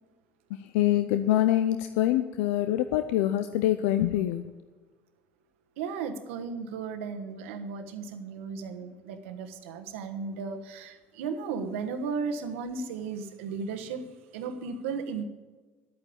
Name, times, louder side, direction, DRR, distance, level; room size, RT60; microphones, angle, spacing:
voice 1, 0.7-4.5, left 13 dB, 80° left, 0.5 m, -25 dB
voice 2, 5.8-14.1 14.3-15.2, right 5 dB, 80° right, 1.2 m, -35 dB
11.0 x 8.8 x 8.6 m
hypercardioid pair, 65°, 7 cm